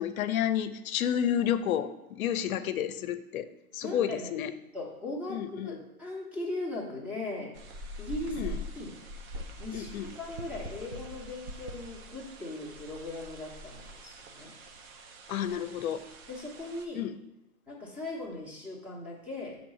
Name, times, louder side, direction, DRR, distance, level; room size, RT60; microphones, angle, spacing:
voice 1, 0.0-3.5 3.7-4.5 5.3-5.8 8.2-8.6 9.7-10.1 15.3-16.0 16.9-17.1, left 9 dB, 70° left, 12 dB, 0.6 m, -30 dB
voice 2, 3.8-4.3 4.7-7.5 8.0-9.0 9.6-14.5 16.3-17.0 17.7-19.6, left 2 dB, 5° right, -4 dB, 0.9 m, -39 dB
sound 1, 7.5-16.8, equal, 40° right, 0.7 m, -44 dB
6.1 x 3.0 x 5.4 m, 0.92 s
hypercardioid pair, 135°, 44 cm